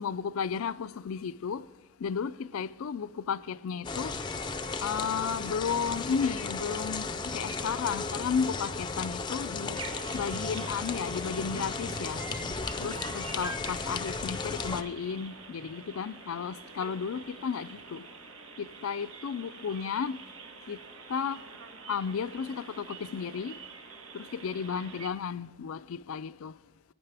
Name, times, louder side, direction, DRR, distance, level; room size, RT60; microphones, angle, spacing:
voice 1, 0.0-1.6 2.0-4.1 4.8-9.8 10.1-12.2 12.8-18.0 18.6-20.2 20.7-20.8 21.1-21.4 21.9-23.6 24.1-26.5, left 6 dB, 85° left, 0.4 m, -33 dB
sound 1, 3.8-14.8, left 4 dB, 20° left, 0.5 m, -35 dB
sound 2, 9.7-25.1, right 3 dB, 70° right, 1.3 m, -46 dB
16.5 x 9.4 x 3.4 m
head